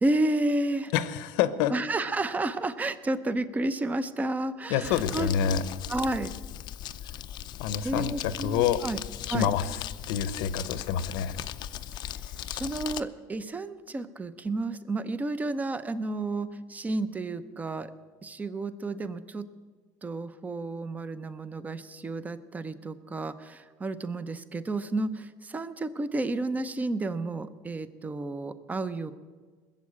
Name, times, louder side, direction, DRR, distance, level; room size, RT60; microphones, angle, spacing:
voice 1, 0.0-0.9 1.7-5.3 5.9-6.3 7.8-9.0 9.3-9.5 12.5-17.9 18.2-19.5 20.0-29.1, right 2 dB, 15° right, 13 dB, 0.7 m, -31 dB
voice 2, 0.9-1.7 4.7-5.6 7.6-8.8 9.3-11.4, left 9 dB, 80° left, 14 dB, 0.9 m, -27 dB
Crumpling crinkling, 4.8-13.0, left 12 dB, 45° left, 0.6 m, -38 dB
20.0 x 7.3 x 8.6 m, 1.5 s
cardioid pair, 135°, 10 cm